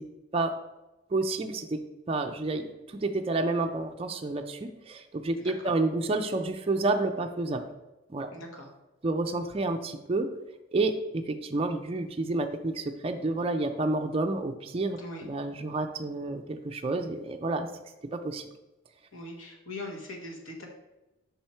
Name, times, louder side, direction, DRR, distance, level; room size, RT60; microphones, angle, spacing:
voice 1, 1.1-1.8 2.1-7.6 8.1-8.3 9.0-10.3 10.7-17.7 18.1-18.4, right 2 dB, 30° right, 4 dB, 0.4 m, -29 dB
voice 2, 5.4-5.7 8.3-8.7 15.0-15.2 19.1-20.7, left 1 dB, 75° left, 1 dB, 1.3 m, -41 dB
5.4 x 4.4 x 4.3 m, 1.0 s
head